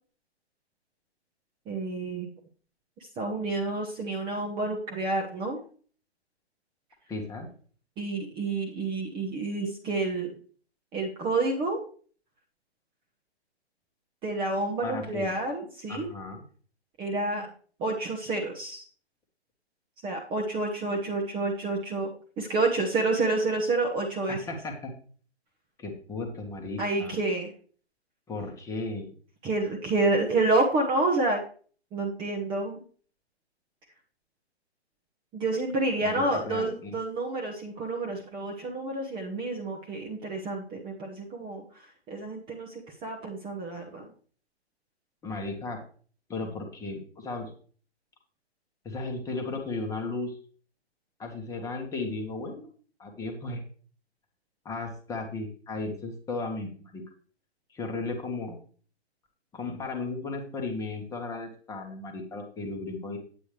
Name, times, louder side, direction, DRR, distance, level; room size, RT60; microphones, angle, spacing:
voice 1, 1.7-2.3 3.2-5.6 8.0-10.3 10.9-11.8 14.2-16.1 17.0-17.5 17.8-18.8 20.0-22.1 22.4-24.4 26.8-27.5 29.4-31.4 31.9-32.8 35.3-41.6 42.1-44.1, right 2 dB, 15° right, 1 dB, 0.9 m, -29 dB
voice 2, 7.1-7.5 14.8-15.3 15.9-16.4 24.3-24.9 25.8-27.2 28.3-29.1 36.0-37.0 45.2-45.8 46.3-47.5 48.8-50.4 51.2-52.7 53.0-53.6 54.6-57.0 57.7-58.6 59.5-63.2, left 3 dB, 10° left, 2 dB, 1.2 m, -35 dB
9.0 x 8.4 x 3.3 m, 0.43 s
figure-of-eight pair, 130°, 33 cm